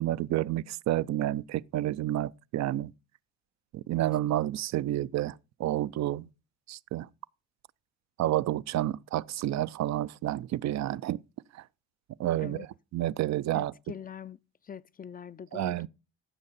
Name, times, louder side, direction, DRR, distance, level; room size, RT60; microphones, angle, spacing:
voice 1, 0.0-2.9 3.7-6.3 6.7-7.1 8.2-11.2 11.5-11.6 12.2-12.7 12.9-13.7 15.5-15.9, right 14 dB, 65° right, 0.5 m, -30 dB
voice 2, 13.5-14.4 14.6-15.9, left 8 dB, 30° left, 0.4 m, -43 dB
15.0 x 6.5 x 4.1 m
cardioid pair, 90°, 30 cm